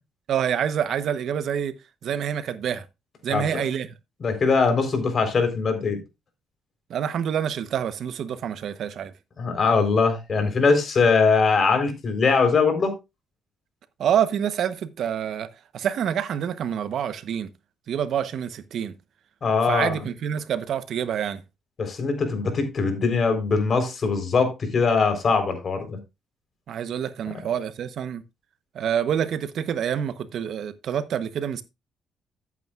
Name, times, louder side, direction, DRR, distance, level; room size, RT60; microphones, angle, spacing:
voice 1, 0.3-1.7 2.0-2.8 3.2-3.9 6.9-9.1 14.0-15.5 15.7-17.5 17.9-18.9 19.7-21.4 26.7-28.2 28.7-31.6, right 9 dB, 70° right, 1.0 m, -27 dB
voice 2, 3.3-3.7 4.2-6.0 9.4-12.9 19.4-20.0 21.8-26.0, left 4 dB, 45° left, 3.9 m, -22 dB
14.0 x 8.5 x 2.4 m
cardioid pair, 90°, 0 cm